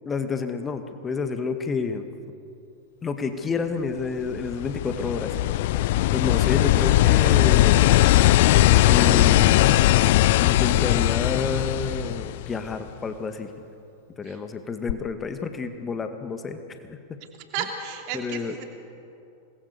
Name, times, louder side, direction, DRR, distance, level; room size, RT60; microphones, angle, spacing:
voice 1, 0.1-2.1 3.0-5.3 6.1-7.8 8.8-9.6 10.4-13.5 14.2-17.0 18.1-18.5, left 5 dB, 20° left, 7 dB, 2.0 m, -29 dB
sound 1, 4.3-12.7 14.9-15.0, left 16 dB, 50° left, 0.5 m, -19 dB
voice 2, 17.5-18.6, right 8 dB, 45° right, 4 dB, 3.0 m, -33 dB
27.0 x 20.5 x 7.0 m, 2.6 s
figure-of-eight pair, 90°, 0 cm